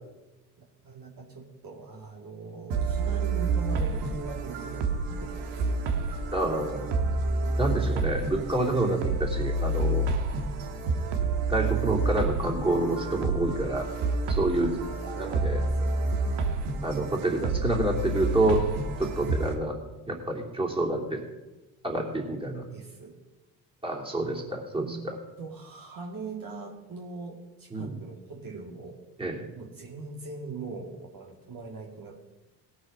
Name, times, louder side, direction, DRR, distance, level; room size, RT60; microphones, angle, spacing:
voice 1, 0.6-6.1 14.6-16.0 22.7-23.2 24.5-29.0 29.5-32.2, right 4 dB, 50° right, -1 dB, 2.3 m, -41 dB
sound 1, 2.7-19.5, right 3 dB, 75° right, 1.5 m, -29 dB
voice 2, 6.3-6.9 7.6-10.1 11.5-13.9 14.3-14.8 15.2-15.6 16.8-18.6 19.0-19.8 20.1-21.2 21.8-22.6 23.8-25.2 27.7-27.9 29.2-29.4, right 2 dB, 10° right, -1 dB, 3.1 m, -28 dB
18.0 x 6.4 x 5.3 m, 1.1 s
hypercardioid pair, 55°, 44 cm